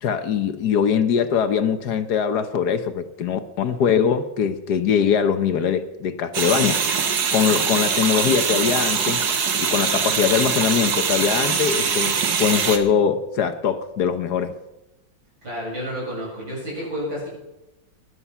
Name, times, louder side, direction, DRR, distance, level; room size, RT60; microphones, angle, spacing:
voice 1, 0.0-6.8 7.3-9.2 9.6-14.5, left 7 dB, 65° left, 1.4 m, -22 dB
sound 1, 6.3-12.8, right 6 dB, 60° right, 1.8 m, -22 dB
voice 2, 15.4-17.3, equal, 90° right, 8.3 m, -30 dB
17.0 x 11.5 x 5.5 m
omnidirectional pair, 2.0 m